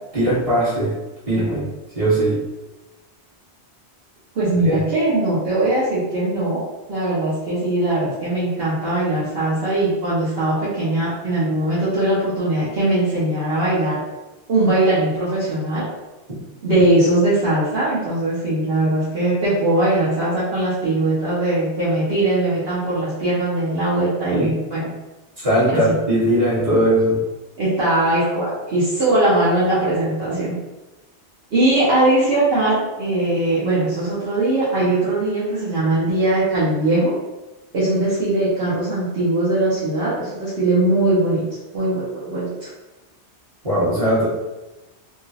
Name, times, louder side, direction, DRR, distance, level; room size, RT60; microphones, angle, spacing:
voice 1, 0.1-0.9 1.3-1.6 1.9-2.4 4.6-4.8 24.3-24.5 25.4-27.2 43.6-44.3, right 1 dB, 30° right, -11 dB, 1.6 m, -19 dB
voice 2, 4.3-6.6 6.9-14.0 14.5-15.8 16.6-24.9 25.7-25.9 27.6-30.5 31.5-37.1 37.7-41.4 41.7-42.7, right 2 dB, 60° right, -10 dB, 1.1 m, -20 dB
3.5 x 2.4 x 2.7 m, 1.1 s
omnidirectional pair, 1.2 m